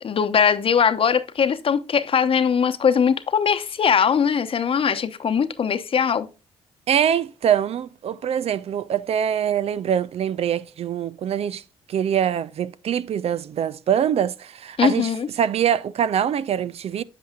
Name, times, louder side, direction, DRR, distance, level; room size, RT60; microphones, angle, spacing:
voice 1, 0.0-6.3 14.8-15.3, left 7 dB, 45° left, 0.9 m, -20 dB
voice 2, 6.9-11.6 11.9-15.1 15.4-17.0, right 9 dB, 55° right, 0.5 m, -23 dB
8.2 x 7.8 x 2.3 m
hypercardioid pair, 50°, 13 cm